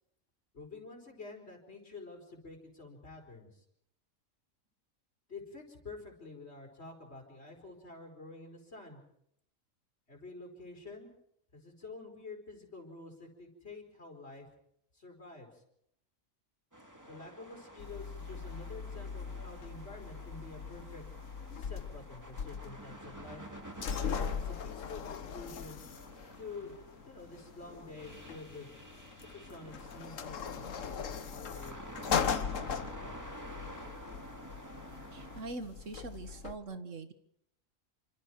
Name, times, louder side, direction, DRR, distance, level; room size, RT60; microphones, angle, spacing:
voice 1, 0.5-3.6 5.3-9.0 10.1-11.1 11.5-14.5 14.9-15.6 17.1-23.5 24.3-25.8 26.4-26.8 27.0-28.7 29.2-33.2, left 3 dB, 50° left, 1 dB, 5.1 m, -49 dB
sound 1, 16.7-35.4, right 1 dB, 15° right, 2.2 m, -50 dB
sound 2, 17.8-36.6, left 7 dB, 70° left, 1.4 m, -40 dB
voice 2, 35.1-37.1, right 3 dB, 65° right, 9 dB, 1.9 m, -43 dB
28.5 x 25.5 x 4.7 m, 0.73 s
omnidirectional pair, 1.4 m